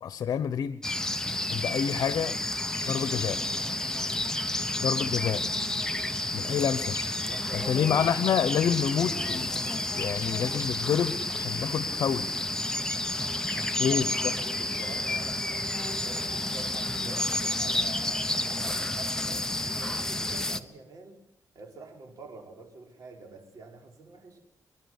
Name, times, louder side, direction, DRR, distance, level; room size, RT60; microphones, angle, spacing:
voice 1, 0.0-0.8 1.5-2.4 2.9-3.4 4.8-5.4 6.3-6.9 7.5-12.3 13.8-14.1, left 8 dB, 80° left, 13 dB, 1.0 m, -28 dB
sound 1, 0.8-20.6, left 1 dB, 10° left, 1.1 m, -30 dB
sound 2, 2.7-15.0, left 4 dB, 35° left, 3.1 m, -49 dB
voice 2, 7.3-7.9 13.5-15.7 16.0-21.2 21.5-24.4, right 3 dB, 65° right, 1 dB, 5.7 m, -47 dB
27.5 x 11.0 x 9.7 m, 0.76 s
cardioid pair, 105°, 6 cm